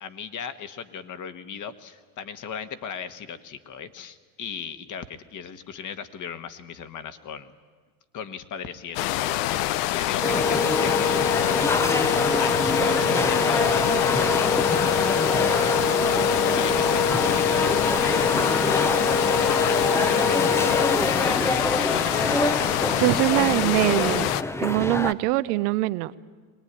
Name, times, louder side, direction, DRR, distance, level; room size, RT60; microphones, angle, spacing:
voice 1, 0.0-7.5 8.1-12.1 12.4-14.0 14.3-19.1 19.4-22.1 24.6-24.7, left 7 dB, 40° left, 10 dB, 1.5 m, -37 dB
sound 1, 9.0-24.4, left 15 dB, 80° left, 0.8 m, -26 dB
sound 2, 10.2-25.1, left 3 dB, 5° left, 0.6 m, -24 dB
voice 2, 23.0-24.3 24.6-26.2, right 19 dB, 80° right, 15 dB, 0.9 m, -23 dB
22.5 x 19.0 x 9.9 m, 1.5 s
supercardioid pair, 110°, 46 cm